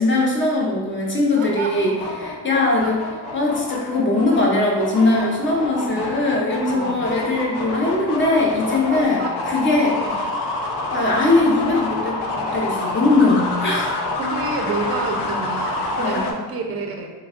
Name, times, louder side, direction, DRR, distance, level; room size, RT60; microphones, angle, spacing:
voice 1, 0.0-3.0 3.3-10.0 10.9-14.0 16.0-16.3, left 2 dB, 30° left, -2 dB, 0.7 m, -20 dB
voice 2, 1.3-1.9 2.8-2.9 5.9-6.1 6.7-7.1 8.9-9.3 10.0-10.2 13.6-13.7 14.2-17.1, right 4 dB, 40° right, 2 dB, 0.4 m, -29 dB
sound 1, 1.4-16.3, left 2 dB, 85° left, 0.6 m, -28 dB
3.2 x 2.3 x 3.5 m, 1.3 s
cardioid pair, 135°, 39 cm